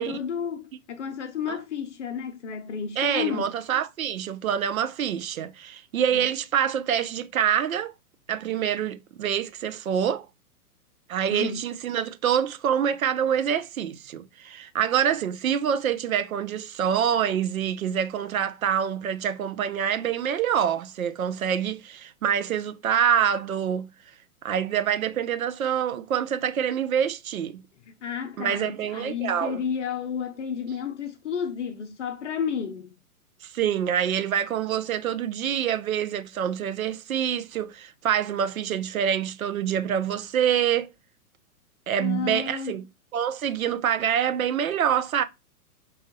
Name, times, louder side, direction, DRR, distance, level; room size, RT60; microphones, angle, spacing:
voice 1, 0.0-3.6 6.1-6.3 11.3-11.7 27.9-33.0 42.0-42.7, left 7 dB, 55° left, 0.6 m, -32 dB
voice 2, 3.0-7.9 8.3-10.3 11.1-23.9 24.4-27.6 28.4-29.6 33.4-40.9 41.9-42.8 43.1-45.2, right 9 dB, 65° right, 0.6 m, -26 dB
5.4 x 2.3 x 2.6 m
figure-of-eight pair, 110°, 45 cm